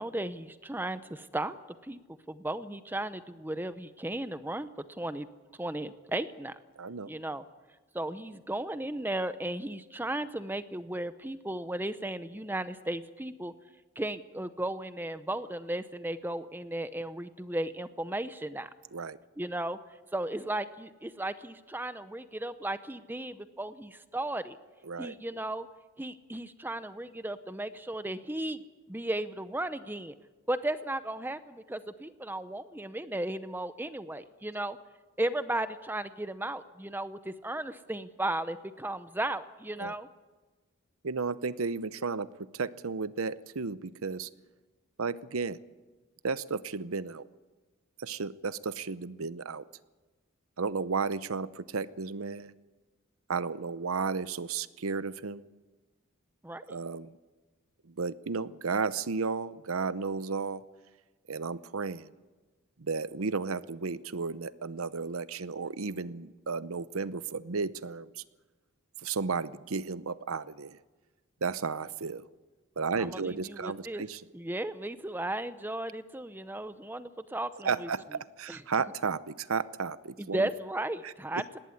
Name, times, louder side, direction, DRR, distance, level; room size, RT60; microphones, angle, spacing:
voice 1, 0.0-1.6 1.8-2.0 2.3-4.7 5.0-5.3 5.6-6.6 7.1-7.4 7.9-13.5 14.0-18.7 19.4-19.8 20.1-24.6 25.0-25.7 26.0-28.6 28.9-30.1 30.5-34.8 35.2-40.1 56.4-56.8 73.0-74.0 74.3-77.9 78.5-78.6 80.2-81.6, right 1 dB, 10° right, 12 dB, 0.7 m, -35 dB
voice 2, 6.8-7.1 18.9-19.2 24.8-25.1 39.8-40.0 41.0-42.3 42.5-44.3 45.0-45.6 46.2-47.3 48.0-49.6 50.6-52.5 53.3-55.4 56.7-57.2 57.8-60.6 61.3-62.1 62.8-68.2 69.0-70.8 71.4-72.2 72.8-74.2 77.6-80.5 81.0-81.4, right 4 dB, 80° right, 16 dB, 0.8 m, -33 dB
19.0 x 18.0 x 9.7 m, 1.2 s
head